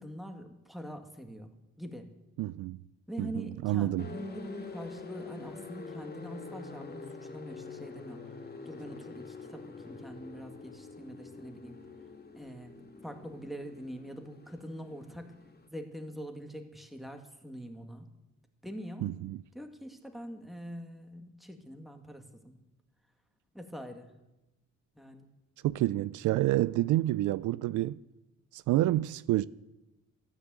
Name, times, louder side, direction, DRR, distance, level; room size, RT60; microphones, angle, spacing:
voice 1, 0.0-2.1 3.1-8.4 8.7-11.8 12.3-15.4 15.7-18.1 18.6-19.1 19.5-22.6 23.5-24.1 24.9-25.3 26.9-27.0, equal, ahead, 2.1 m, -44 dB
voice 2, 2.4-2.8 3.2-4.1 19.0-19.4 25.6-28.0 28.5-29.5, right 15 dB, 80° right, 0.5 m, -28 dB
sound 1, 4.0-15.7, left 4 dB, 30° left, 2.2 m, -46 dB
13.5 x 10.0 x 7.8 m
cardioid pair, 90°, 30 cm